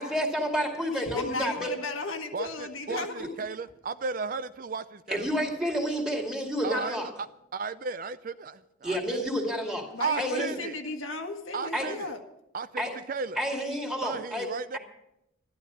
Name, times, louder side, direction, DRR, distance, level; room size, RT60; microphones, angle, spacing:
voice 1, 0.0-1.7 3.2-3.3 5.1-7.1 8.8-9.8 10.2-10.5 11.7-11.9 12.8-12.9 13.4-14.5, equal, 5° right, 2.3 m, -29 dB
voice 2, 0.9-3.4 9.9-12.2, left 3 dB, 85° left, 1.6 m, -35 dB
voice 3, 2.3-5.3 6.6-9.2 10.0-10.7 11.5-12.1 12.5-13.4 14.0-14.8, right 5 dB, 40° right, 0.4 m, -35 dB
12.5 x 12.0 x 6.1 m
head